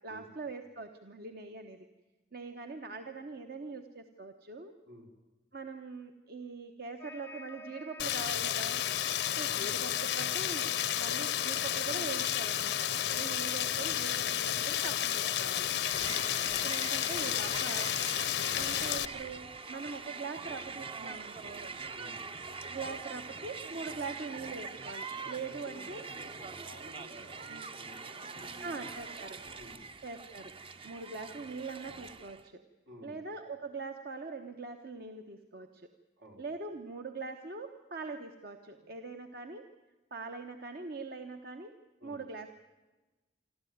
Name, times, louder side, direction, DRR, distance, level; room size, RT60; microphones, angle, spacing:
voice 1, 0.0-1.9 2.3-4.7 5.5-8.8 9.4-10.7 11.0-15.7 16.5-17.9 18.5-21.7 22.5-26.0 27.5-27.6 28.6-29.4 30.0-30.6 30.8-32.6 33.0-35.9 36.4-39.7 40.1-41.7 42.0-42.5, right 4 dB, 55° right, 6 dB, 1.1 m, -42 dB
sound 1, 7.0-18.8, left 2 dB, 10° left, 0.7 m, -49 dB
Rain, 8.0-19.1, left 11 dB, 65° left, 0.6 m, -32 dB
Crowd, 15.8-32.5, right 4 dB, 30° right, 0.7 m, -43 dB
voice 2, 25.2-28.9 29.5-29.9 32.9-33.2 35.6-35.7 36.2-36.5 38.8-38.9 42.0-42.2, equal, 80° right, 2 dB, 4.5 m, -53 dB
26.0 x 13.0 x 9.4 m, 1.2 s
head